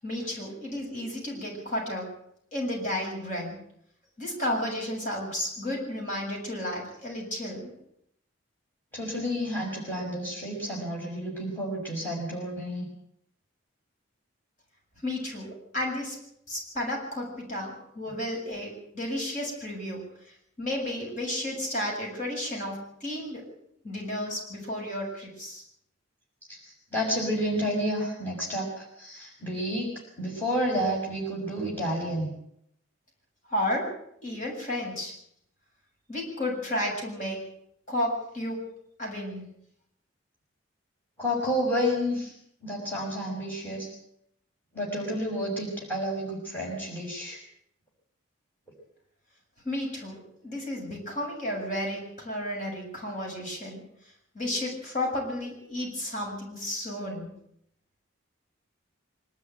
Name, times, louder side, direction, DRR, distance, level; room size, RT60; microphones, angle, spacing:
voice 1, 0.0-2.1 2.5-3.6 4.2-7.7 15.0-16.2 16.5-20.0 20.6-23.4 23.8-25.6 33.5-33.9 34.2-35.1 36.1-37.4 37.9-38.6 39.0-39.4 49.6-53.8 54.3-57.3, left 1 dB, 40° left, -2 dB, 7.5 m, -32 dB
voice 2, 8.9-12.9 26.5-32.3 41.2-42.3 42.6-43.9 44.7-47.4, equal, 10° left, -1 dB, 6.1 m, -30 dB
24.5 x 13.0 x 9.2 m, 0.73 s
head